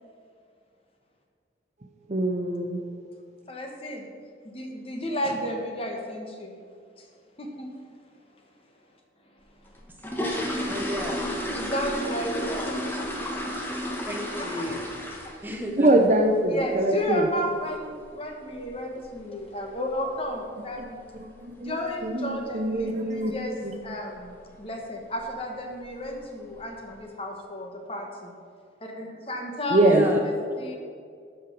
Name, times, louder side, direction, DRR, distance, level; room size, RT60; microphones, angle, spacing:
voice 1, 2.1-2.8 15.8-17.3 21.2-21.8 22.0-23.3 23.6-23.7 29.7-30.0, right 1 dB, 40° right, 4 dB, 0.7 m, -23 dB
voice 2, 3.5-4.1 4.4-6.6 7.0-7.1 7.4-7.8 11.5-12.8 13.1-13.6 14.4-14.6 16.5-21.0 21.6-23.5 23.8-24.3 24.6-28.3 28.8-30.8, equal, 30° left, 2 dB, 1.3 m, -33 dB
sound 1, 9.7-15.6 15.8-16.1 16.5-16.6 16.9-17.1 17.5-17.7 17.9-18.0 18.6-18.7 19.0-19.1 19.7-20.0 20.2-20.3 20.7-21.0 21.3-21.4 21.8-21.9 22.5-22.8 23.2-23.5 23.8-23.9 24.4-24.5 25.2-25.4 25.8-26.3 26.7-26.8, equal, 10° left, 1.1 m, -32 dB
voice 3, 10.7-11.2 14.1-14.8 15.4-15.9 29.8-30.3, equal, 10° right, 1 dB, 1.1 m, -31 dB
13.0 x 5.0 x 6.0 m, 2.2 s
head